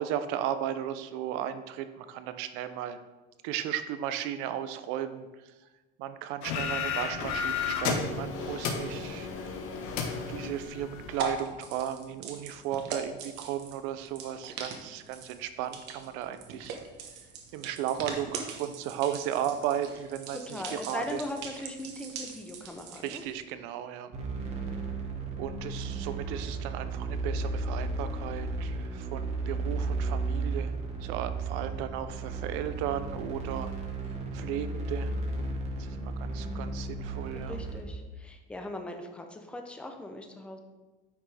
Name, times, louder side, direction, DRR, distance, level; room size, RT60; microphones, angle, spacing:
voice 1, 0.0-3.0 3.4-5.5 6.0-9.3 10.3-16.8 17.5-21.2 23.0-24.1 25.4-30.7 31.0-33.7 34.3-35.1 35.8-37.6, right 10 dB, 80° right, 11 dB, 0.7 m, -35 dB
sound 1, 6.4-11.3, left 5 dB, 85° left, 1.2 m, -33 dB
sound 2, 10.5-23.3, right 5 dB, 60° right, 1.2 m, -41 dB
voice 2, 20.3-23.2 37.3-40.6, left 1 dB, 5° left, 4 dB, 0.6 m, -39 dB
sound 3, 24.1-37.8, right 3 dB, 35° right, 1.2 m, -34 dB
9.4 x 5.8 x 3.4 m, 1.2 s
cardioid pair, 160°, 20 cm